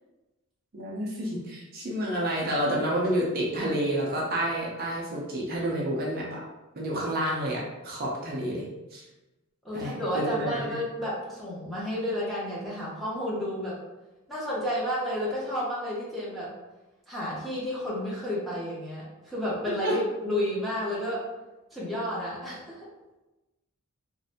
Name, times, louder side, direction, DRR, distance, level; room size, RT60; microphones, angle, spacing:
voice 1, 0.7-6.4 6.8-8.7 8.9-9.0 9.7-10.8 19.8-20.0, right 1 dB, 45° right, -4 dB, 0.6 m, -29 dB
voice 2, 9.6-13.8 14.3-16.5 17.1-21.2 21.7-22.9, equal, ahead, -8 dB, 0.8 m, -31 dB
3.1 x 2.6 x 2.8 m, 1.0 s
head